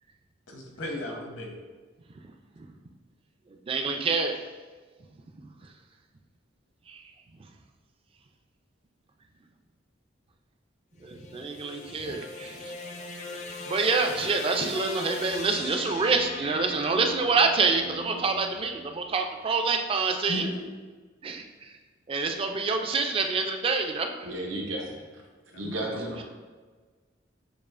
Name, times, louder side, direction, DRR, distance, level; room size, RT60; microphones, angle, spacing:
voice 1, 0.5-1.5 20.3-20.7 25.5-26.2, left 1 dB, 65° left, 0 dB, 0.8 m, -36 dB
voice 2, 3.7-4.4 6.9-7.1 11.0-12.7 13.5-20.5 21.2-21.8 22.1-24.3 25.9-26.0, right 4 dB, 30° right, 4 dB, 0.3 m, -27 dB
sound 1, 11.0-19.3, left 2 dB, 40° left, 0.4 m, -39 dB
voice 3, 24.2-25.2 25.5-26.2, right 1 dB, 90° right, -2 dB, 0.9 m, -34 dB
6.8 x 2.4 x 2.4 m, 1.4 s
head